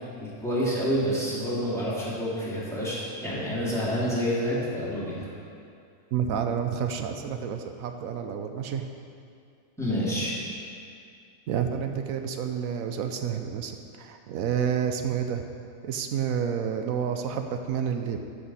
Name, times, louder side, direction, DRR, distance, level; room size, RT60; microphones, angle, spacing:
voice 1, 0.2-5.3 9.8-10.3, equal, ahead, -9 dB, 2.5 m, -28 dB
voice 2, 6.1-8.9 11.5-15.5 15.8-18.2, right 8 dB, 85° right, 6 dB, 1.1 m, -29 dB
13.5 x 6.1 x 4.2 m, 2.4 s
omnidirectional pair, 1.4 m